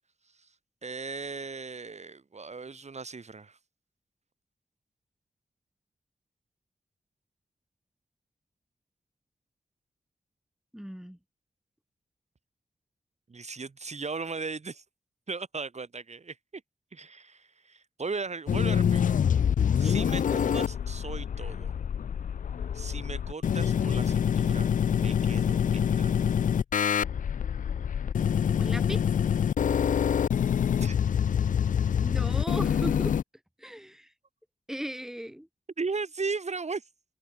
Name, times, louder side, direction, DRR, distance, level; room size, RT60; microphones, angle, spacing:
voice 1, 0.8-3.6 13.3-14.8 15.3-16.4 16.9-19.2 19.8-21.7 22.7-26.4 30.7-30.9 35.8-36.8, right 4 dB, 55° right, 2.3 m, -37 dB
voice 2, 10.7-11.2 19.8-20.0 28.6-29.0 32.0-33.2 33.6-34.1 34.7-35.5, equal, 5° right, 2.4 m, -37 dB
sound 1, 18.5-33.2, left 8 dB, 70° left, 0.5 m, -26 dB
cardioid pair, 40°, 14 cm